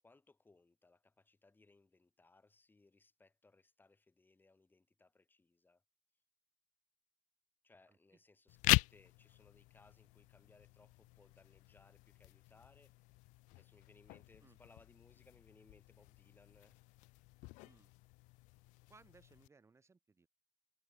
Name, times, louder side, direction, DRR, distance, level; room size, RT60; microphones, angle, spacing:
voice 1, 0.0-5.8 7.6-13.2 13.5-16.8, left 3 dB, 10° left, 8.0 m, -67 dB
sound 1, 8.5-19.5, left 24 dB, 50° left, 0.4 m, -41 dB
voice 2, 18.9-20.3, right 4 dB, 15° right, 4.4 m, -65 dB
hypercardioid pair, 105°, 17 cm